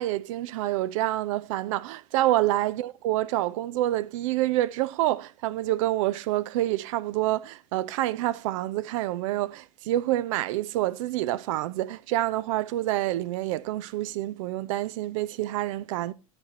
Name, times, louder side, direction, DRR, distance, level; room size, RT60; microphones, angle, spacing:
voice 1, 0.0-16.1, right 15 dB, 65° right, 0.5 m, -27 dB
12.5 x 6.0 x 2.8 m
hypercardioid pair, 95°, 18 cm